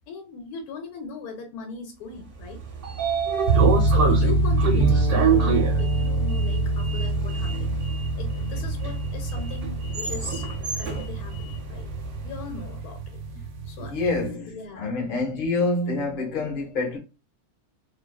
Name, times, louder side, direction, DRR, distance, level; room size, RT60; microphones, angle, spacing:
voice 1, 0.1-2.6 3.9-7.8 8.2-10.5 10.7-11.9 12.2-13.0 13.3-14.9, left 4 dB, 75° left, 1.0 m, -39 dB
Sliding door, 2.4-12.5, right 6 dB, 50° right, 0.7 m, -28 dB
sound 1, 3.5-14.3, right 2 dB, 80° right, 1.0 m, -25 dB
Bowed string instrument, 4.8-8.5, right 7 dB, ahead, 0.6 m, -32 dB
voice 2, 13.8-14.5 14.8-17.0, left 3 dB, 45° left, 0.7 m, -26 dB
2.6 x 2.2 x 2.2 m
omnidirectional pair, 1.6 m